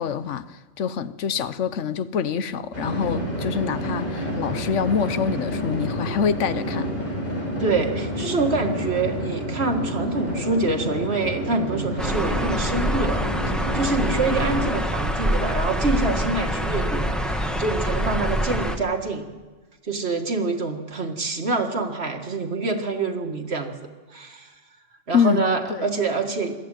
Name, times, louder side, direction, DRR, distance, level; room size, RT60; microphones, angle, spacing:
voice 1, 0.0-6.9 25.1-25.4, left 6 dB, 75° left, 1.1 m, -25 dB
sound 1, 2.7-14.6, equal, 45° left, 5.6 m, -29 dB
voice 2, 7.6-19.3 19.8-23.7 24.1-24.5 25.1-26.5, right 3 dB, 55° right, 2.1 m, -26 dB
sound 2, 12.0-18.8, equal, ahead, 1.3 m, -25 dB
21.5 x 14.0 x 9.1 m
omnidirectional pair, 1.3 m